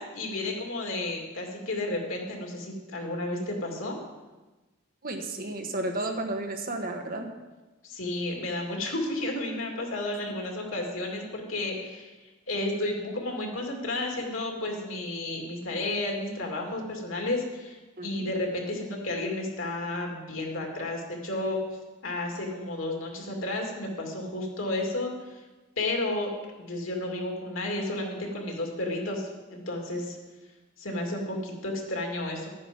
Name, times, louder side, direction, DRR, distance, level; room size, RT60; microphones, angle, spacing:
voice 1, 0.0-4.0 7.8-12.1 12.5-21.6 22.0-25.1 25.8-26.3 26.6-30.2 30.8-32.5, left 2 dB, 90° left, 1 dB, 2.5 m, -32 dB
voice 2, 5.0-7.3 18.0-18.3, right 2 dB, 45° right, 4 dB, 1.5 m, -32 dB
12.0 x 9.5 x 5.3 m, 1.2 s
head